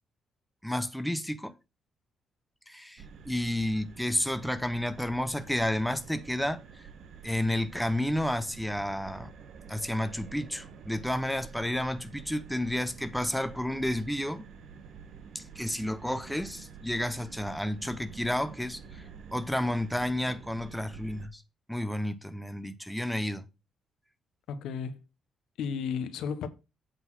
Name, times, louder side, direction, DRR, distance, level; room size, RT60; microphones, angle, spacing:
voice 1, 0.6-1.5 2.7-6.9 7.2-9.3 9.7-14.4 15.3-21.4 21.7-23.5, left 1 dB, ahead, 0.7 m, -31 dB
sound 1, 3.0-21.3, right 6 dB, 70° right, 1.2 m, -48 dB
voice 2, 24.5-25.0 25.6-26.5, left 6 dB, 80° left, 0.9 m, -33 dB
8.1 x 4.0 x 6.0 m
cardioid pair, 90°, 0 cm